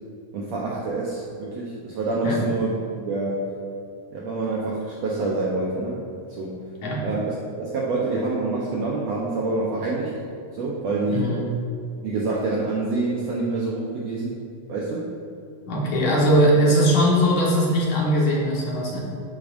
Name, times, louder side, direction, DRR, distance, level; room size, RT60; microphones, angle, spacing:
voice 1, 0.3-3.5 4.1-6.0 6.3-6.6 7.0-10.1 10.5-11.4 12.0-14.4 14.7-15.1, right 3 dB, 70° right, -4 dB, 1.6 m, -27 dB
voice 2, 11.1-11.4 15.7-19.0, equal, 60° left, -5 dB, 2.7 m, -20 dB
11.0 x 8.6 x 2.6 m, 2.5 s
omnidirectional pair, 4.0 m